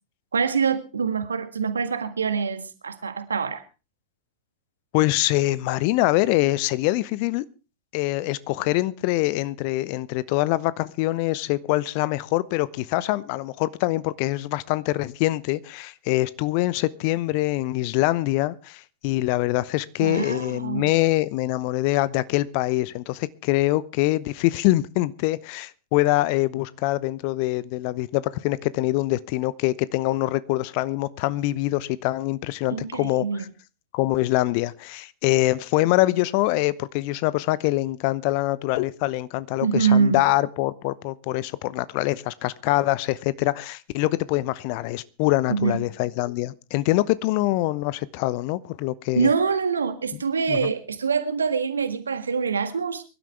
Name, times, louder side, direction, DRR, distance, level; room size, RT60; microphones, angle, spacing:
voice 1, 0.3-3.6 20.0-21.0 32.7-33.4 39.6-40.2 45.5-45.9 49.1-53.0, right 5 dB, 75° right, 1.6 m, -25 dB
voice 2, 4.9-7.4 7.9-33.5 33.9-49.3 50.1-50.2 50.5-50.7, left 18 dB, 45° left, 0.7 m, -24 dB
23.5 x 12.0 x 3.3 m
figure-of-eight pair, 90°, 0 cm